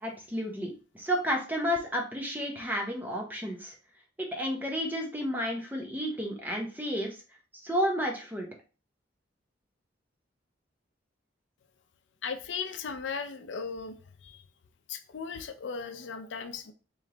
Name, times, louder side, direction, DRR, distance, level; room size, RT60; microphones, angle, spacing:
voice 1, 0.0-3.7 4.2-7.2 7.6-8.5, equal, 10° right, 0.8 m, -31 dB
voice 2, 12.2-14.4 14.9-16.7, left 5 dB, 70° left, 0.5 m, -37 dB
3.3 x 3.0 x 3.7 m
head